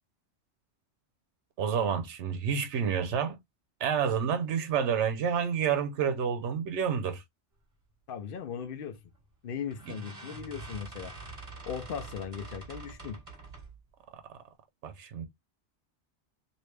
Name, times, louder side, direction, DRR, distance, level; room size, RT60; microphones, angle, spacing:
voice 1, 1.6-3.4 3.8-7.2 14.8-15.3, right 7 dB, 85° right, 0.9 m, -29 dB
voice 2, 8.1-9.0 9.4-11.2 11.7-13.2, left 7 dB, 60° left, 0.8 m, -38 dB
sound 1, 9.0-9.2 9.7-13.8, right 3 dB, 30° right, 1.2 m, -45 dB
3.0 x 2.7 x 3.2 m
omnidirectional pair, 1.2 m